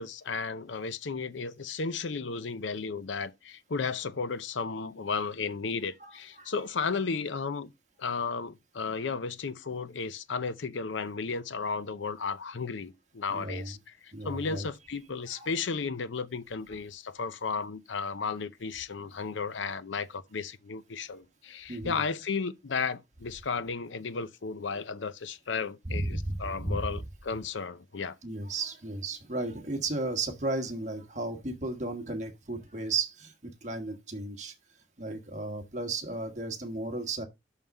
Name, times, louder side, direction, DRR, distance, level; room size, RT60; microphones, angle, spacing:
voice 1, 0.0-7.7 8.0-13.8 14.0-28.2, left 5 dB, 75° left, 0.6 m, -34 dB
voice 2, 6.0-6.5 13.3-13.7 14.1-14.7 15.3-15.5 16.7-16.8 19.0-19.1 21.7-22.0 25.9-27.0 28.2-34.5 35.0-37.2, right 2 dB, 40° right, 1.4 m, -34 dB
6.4 x 5.5 x 5.3 m
head